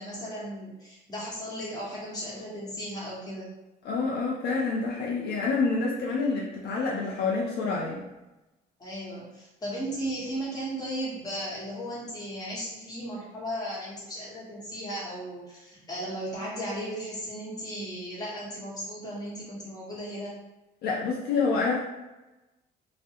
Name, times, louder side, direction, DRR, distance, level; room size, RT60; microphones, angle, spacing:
voice 1, 0.0-3.5 8.8-20.4, equal, 20° left, -6 dB, 1.1 m, -36 dB
voice 2, 3.8-8.1 20.8-21.8, left 4 dB, 70° left, -3 dB, 0.5 m, -27 dB
2.3 x 2.1 x 2.7 m, 1.0 s
cardioid pair, 110°, 17 cm